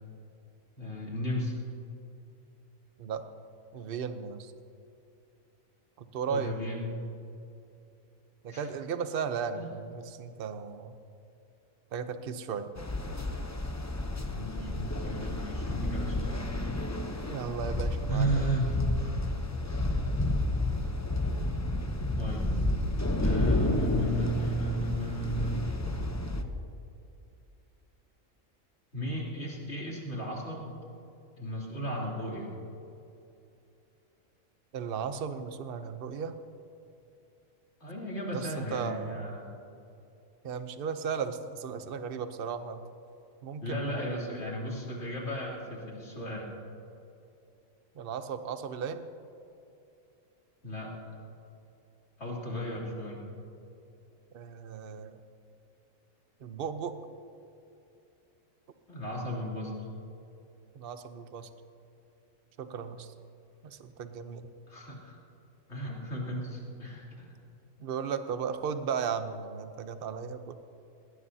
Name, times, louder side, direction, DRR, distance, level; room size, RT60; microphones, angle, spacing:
voice 1, 0.8-1.5 6.3-6.8 8.5-8.7 9.5-9.7 14.3-16.4 18.1-18.8 22.2-22.5 23.2-25.7 28.9-30.8 31.4-32.5 37.8-39.6 43.6-46.5 50.6-50.9 52.2-53.3 58.9-59.7 64.7-65.2 65.7-67.3, right 1 dB, 55° left, -4 dB, 3.3 m, -34 dB
voice 2, 3.7-4.5 6.0-6.8 8.4-10.9 11.9-12.7 17.2-18.5 34.7-36.3 38.3-39.2 40.4-42.8 43.4-44.3 47.9-49.1 54.3-55.2 56.4-57.0 60.7-61.5 62.6-63.1 63.6-64.5 67.8-70.5, right 6 dB, 50° right, 9 dB, 0.9 m, -36 dB
sound 1, 12.8-26.4, left 1 dB, 15° left, 0.6 m, -31 dB
19.5 x 17.0 x 2.8 m, 2.7 s
omnidirectional pair, 1.4 m